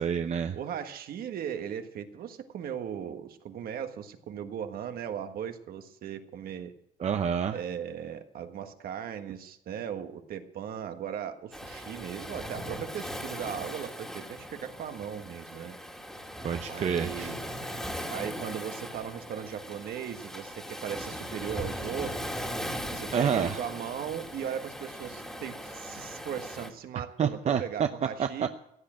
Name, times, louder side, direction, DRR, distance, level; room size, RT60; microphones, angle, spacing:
voice 1, 0.0-0.6 7.0-7.6 16.4-17.3 23.1-23.6 27.2-27.9 28.2-28.3, right 7 dB, 40° right, 8 dB, 0.7 m, -28 dB
voice 2, 0.5-6.7 7.5-15.7 16.7-17.4 18.1-22.4 22.9-28.5, right 9 dB, 60° right, 7 dB, 1.5 m, -38 dB
Waves surf, 11.5-26.7, equal, 5° left, 2.3 m, -39 dB
16.0 x 8.7 x 8.8 m, 0.77 s
cardioid pair, 110°, 17 cm